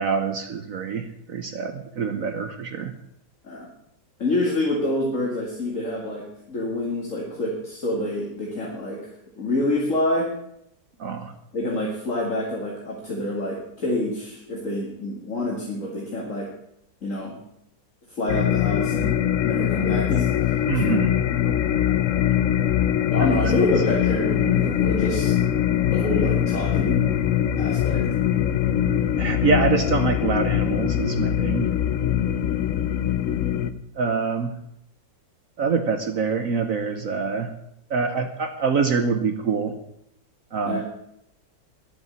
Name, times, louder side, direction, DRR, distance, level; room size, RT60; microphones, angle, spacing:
voice 1, 0.0-2.9 11.0-11.3 20.7-21.1 23.2-23.3 29.2-31.7 34.0-34.5 35.6-37.5 37.9-39.7 40.5-40.8, right 5 dB, 55° right, 8 dB, 1.1 m, -25 dB
voice 2, 4.2-9.0 9.4-10.3 11.5-16.5 17.0-17.4 18.2-20.8 23.1-25.4 25.9-27.0 27.6-28.0 40.6-40.8, left 1 dB, 45° left, -3 dB, 2.6 m, -27 dB
sound 1, 18.3-33.7, left 10 dB, 60° left, 0.8 m, -22 dB
11.0 x 7.9 x 9.5 m, 0.77 s
omnidirectional pair, 1.9 m